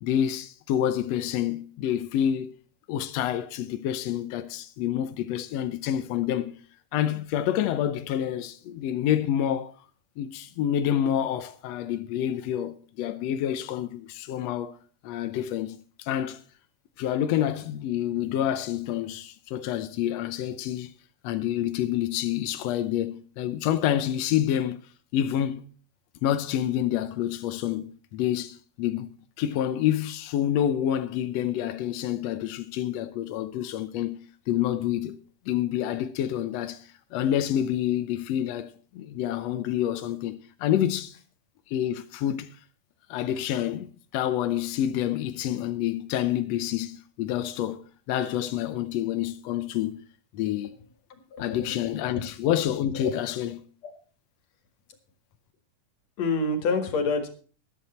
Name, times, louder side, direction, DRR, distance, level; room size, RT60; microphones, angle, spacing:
voice 1, 0.0-2.5 2.9-6.5 6.9-9.7 10.2-14.8 15.0-16.4 17.0-20.9 21.2-24.8 25.1-25.6 26.2-29.1 29.4-34.2 34.5-35.2 35.5-41.1 41.7-42.5 43.1-50.0 50.3-50.7 51.4-53.6, left 11 dB, 80° left, 1.5 m, -28 dB
voice 2, 51.1-52.2 52.9-53.2 53.8-53.9 56.2-57.3, left 3 dB, 55° left, 2.8 m, -28 dB
14.0 x 11.5 x 4.3 m
omnidirectional pair, 3.9 m